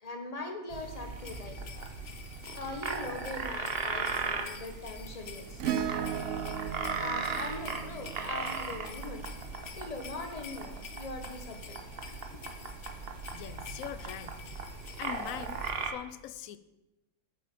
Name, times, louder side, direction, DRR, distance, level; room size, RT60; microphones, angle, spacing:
voice 1, 0.0-1.9 2.5-5.6 7.0-9.3 9.8-11.8 12.3-12.4, left 2 dB, 25° left, 5 dB, 1.4 m, -41 dB
sound 1, 0.7-15.9, right 4 dB, 45° right, 1.2 m, -38 dB
sound 2, 1.2-15.7, left 7 dB, 55° left, 1.1 m, -49 dB
Acoustic guitar / Strum, 5.6-10.2 12.1-12.2, right 9 dB, 65° right, 0.9 m, -37 dB
voice 2, 13.3-14.4 15.0-16.6, left 11 dB, 75° left, 14 dB, 1.0 m, -42 dB
9.0 x 7.7 x 6.9 m, 0.97 s
omnidirectional pair, 1.5 m